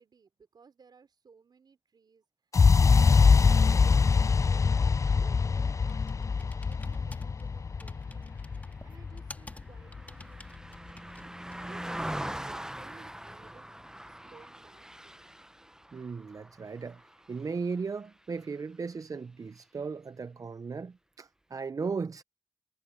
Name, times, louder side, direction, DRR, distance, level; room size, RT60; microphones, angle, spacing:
voice 1, 0.0-4.3 4.7-8.4 8.8-10.4 11.2-11.3 11.6-13.8 14.0-15.4, right 5 dB, 80° right, 4.2 m, -58 dB
sound 1, 2.5-10.5, left 5 dB, 45° left, 0.4 m, -24 dB
Computer keyboard, 5.1-11.8, left 1 dB, 20° left, 1.8 m, -52 dB
Car passing by, 8.4-18.0 18.4-18.6, right 1 dB, 10° right, 0.7 m, -42 dB
voice 2, 15.9-17.0 17.3-22.2, right 5 dB, 50° right, 0.5 m, -36 dB
cardioid pair, 55°, 7 cm